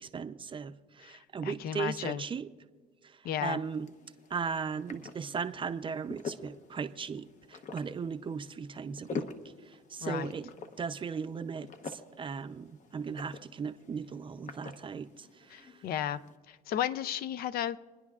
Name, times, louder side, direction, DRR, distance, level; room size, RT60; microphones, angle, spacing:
voice 1, 0.0-2.5 3.0-3.9 4.3-9.3 9.6-10.5 10.8-15.8, right 6 dB, 30° right, 10 dB, 0.5 m, -37 dB
voice 2, 1.4-2.2 3.2-3.6 10.0-10.3 15.5-16.2 16.5-17.8, left 10 dB, 65° left, 16 dB, 0.5 m, -34 dB
sound 1, 3.5-16.4, left 4 dB, 45° left, 0.9 m, -46 dB
28.5 x 10.5 x 2.4 m, 1.5 s
cardioid pair, 110°, 17 cm